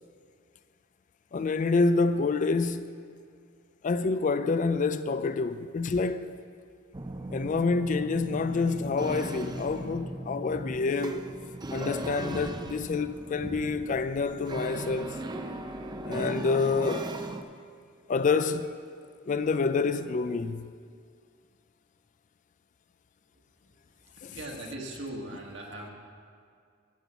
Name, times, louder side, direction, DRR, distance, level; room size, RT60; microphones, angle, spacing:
voice 1, 1.3-2.9 3.8-6.3 7.3-11.3 11.7-15.2 16.0-17.1 18.1-18.7 19.3-20.7 24.2-24.4, left 4 dB, 40° left, 0.4 m, -27 dB
sound 1, 6.9-17.4, right 2 dB, 20° right, 0.6 m, -38 dB
voice 2, 23.3-25.9, right 1 dB, 60° right, 1.7 m, -41 dB
12.0 x 5.9 x 8.1 m
head